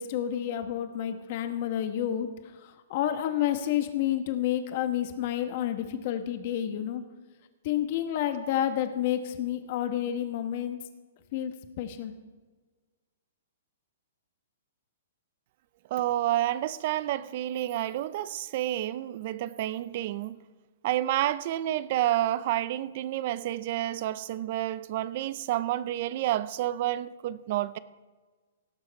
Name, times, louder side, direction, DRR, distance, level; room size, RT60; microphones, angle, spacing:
voice 1, 0.0-7.0 7.6-10.8 11.3-12.1, left 11 dB, 45° left, 1.2 m, -30 dB
voice 2, 15.9-20.4 20.8-27.8, right 13 dB, 45° right, 0.5 m, -29 dB
17.5 x 6.5 x 4.7 m
hypercardioid pair, 145°, 0 cm